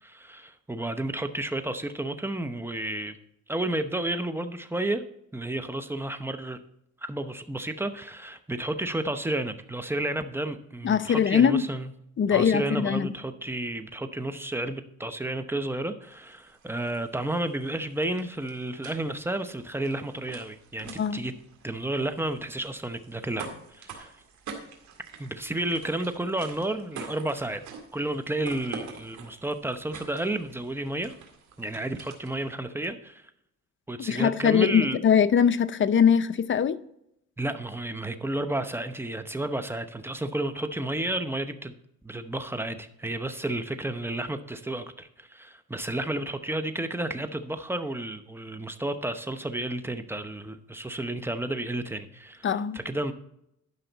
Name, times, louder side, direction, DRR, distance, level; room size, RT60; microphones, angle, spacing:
voice 1, 0.0-3.2 3.5-5.0 5.3-6.6 7.0-11.9 12.3-21.3 21.6-24.1 25.2-27.6 27.9-31.1 31.6-33.3 33.9-35.0 37.4-41.7 42.0-52.5 52.7-53.1, right 1 dB, 10° right, 9 dB, 0.8 m, -31 dB
voice 2, 10.8-11.6 12.2-13.1 21.0-21.2 34.0-36.8 52.4-52.8, left 7 dB, 40° left, 13 dB, 0.6 m, -22 dB
sound 1, 16.0-32.5, right 5 dB, 70° right, 2.1 m, -46 dB
11.5 x 5.7 x 4.1 m, 0.76 s
cardioid pair, 90°, 30 cm